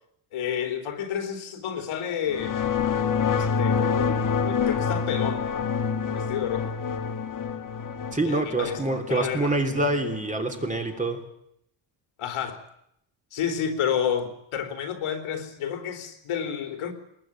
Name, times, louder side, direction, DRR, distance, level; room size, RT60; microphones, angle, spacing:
voice 1, 0.3-2.6 3.3-5.5 6.1-6.8 8.2-8.8 9.1-9.6 12.2-12.6 13.3-16.9, left 8 dB, 80° left, 6 dB, 3.7 m, -30 dB
sound 1, 2.3-11.0, left 6 dB, 40° left, 2.0 m, -27 dB
voice 2, 8.1-11.2, right 2 dB, 15° right, 4 dB, 3.2 m, -26 dB
22.0 x 20.5 x 9.0 m, 0.75 s
cardioid pair, 135°, 50 cm